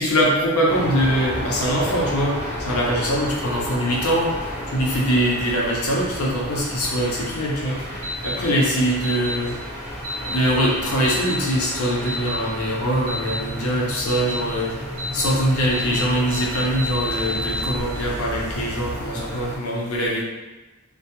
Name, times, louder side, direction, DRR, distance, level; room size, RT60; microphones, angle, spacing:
voice 1, 0.0-7.9 8.2-9.6 10.3-14.8 15.1-20.2, equal, 80° left, -2 dB, 0.6 m, -23 dB
sound 1, 0.7-19.6, equal, 10° left, 0.4 m, -32 dB
sound 2, 8.0-8.3 9.0-9.3 10.0-10.4 11.0-11.4 12.1-12.4 13.1-13.4 14.1-14.4 15.0-15.3 15.7-16.0 16.3-17.7, equal, 85° right, 0.5 m, -30 dB
2.2 x 2.2 x 2.8 m, 1.1 s
head